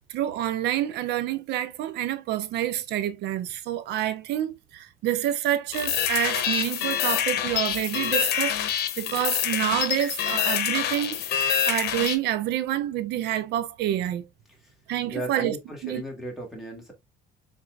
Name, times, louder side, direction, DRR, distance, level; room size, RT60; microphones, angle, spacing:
voice 1, 0.1-14.3 14.9-15.6 15.8-16.0, right 12 dB, 80° right, 0.6 m, -28 dB
sound 1, 5.7-12.2, left 10 dB, 70° left, 0.8 m, -26 dB
voice 2, 15.1-16.9, equal, ahead, 1.8 m, -36 dB
4.0 x 3.7 x 2.3 m
cardioid pair, 110°, 17 cm